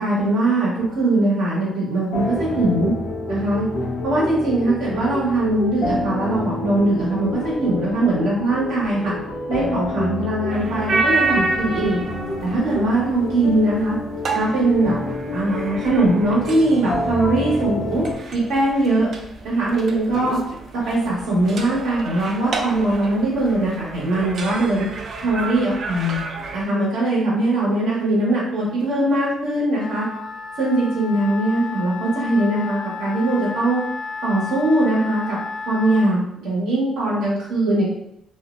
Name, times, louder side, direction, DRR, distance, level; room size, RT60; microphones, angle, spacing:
voice 1, 0.0-2.9 3.3-3.7 4.0-9.1 9.5-12.0 12.4-14.0 14.3-15.0 15.3-18.0 18.3-19.1 19.4-20.4 20.9-24.8 25.2-26.2 26.5-30.0 30.6-33.8 34.2-35.4 35.7-37.8, right 2 dB, 90° right, -5 dB, 1.0 m, -21 dB
sound 1, 0.8-18.1, left 2 dB, 80° left, 0.7 m, -29 dB
sound 2, 10.5-26.6, right 3 dB, 60° right, 0.3 m, -30 dB
Wind instrument woodwind instrument, 29.8-36.1, left 4 dB, 30° left, 0.4 m, -32 dB
2.4 x 2.1 x 2.4 m, 0.78 s
cardioid pair, 90°, 0 cm